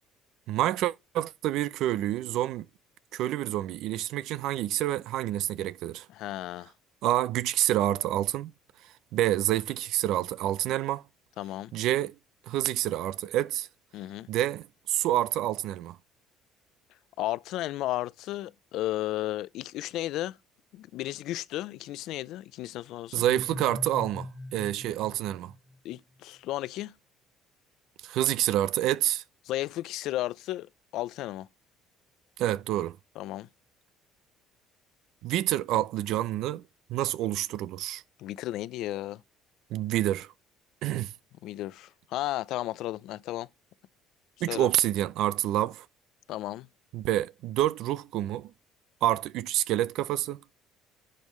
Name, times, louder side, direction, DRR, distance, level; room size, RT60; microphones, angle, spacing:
voice 1, 0.5-2.7 3.1-6.1 7.0-8.5 9.1-11.0 11.7-12.1 12.5-13.7 14.3-16.0 23.1-25.5 28.0-29.2 32.4-33.0 35.2-36.6 36.9-38.0 39.7-40.3 40.8-41.1 44.4-45.8 46.9-48.5 49.0-50.4, right 13 dB, 70° right, 0.5 m, -28 dB
voice 2, 6.1-6.7 11.4-11.7 13.9-14.3 17.2-20.4 20.7-23.2 25.8-26.9 29.4-31.5 33.2-33.5 38.2-39.2 41.4-43.5 44.5-44.7 46.3-46.7, left 15 dB, 70° left, 0.4 m, -34 dB
sound 1, 23.2-26.0, left 1 dB, 5° left, 0.9 m, -41 dB
11.0 x 5.5 x 3.1 m
cardioid pair, 100°, 0 cm